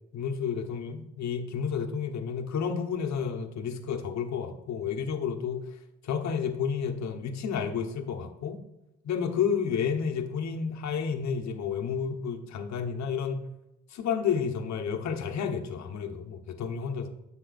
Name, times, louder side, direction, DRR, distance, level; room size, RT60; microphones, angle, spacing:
voice 1, 0.1-5.6 6.0-8.6 9.0-13.4 13.9-17.1, left 6 dB, 65° left, 4 dB, 1.2 m, -31 dB
10.0 x 7.9 x 2.6 m, 0.94 s
cardioid pair, 90°, 30 cm